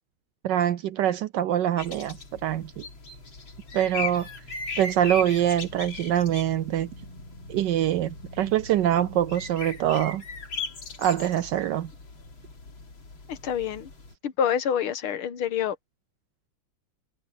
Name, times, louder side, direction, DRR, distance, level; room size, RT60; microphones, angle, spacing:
voice 1, 0.4-2.9 3.7-4.3 4.8-6.9 7.5-10.2 11.0-11.9, right 11 dB, 75° right, 1.0 m, -24 dB
sound 1, 1.8-14.1, left 4 dB, 65° left, 4.0 m, -39 dB
voice 2, 13.3-13.9 14.2-15.8, left 8 dB, 85° left, 2.0 m, -27 dB
omnidirectional pair, 2.3 m